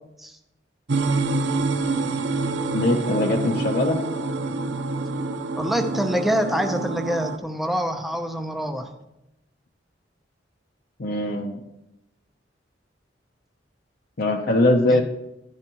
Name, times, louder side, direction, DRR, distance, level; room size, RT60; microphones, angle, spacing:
sound 1, 0.9-7.4, right 3 dB, 75° right, 0.7 m, -26 dB
voice 1, 2.7-4.0 11.0-11.6 14.2-15.0, left 1 dB, 55° left, 1 dB, 0.9 m, -21 dB
voice 2, 5.6-8.9 14.9-15.0, equal, ahead, 5 dB, 0.7 m, -25 dB
11.5 x 10.5 x 3.1 m, 0.89 s
head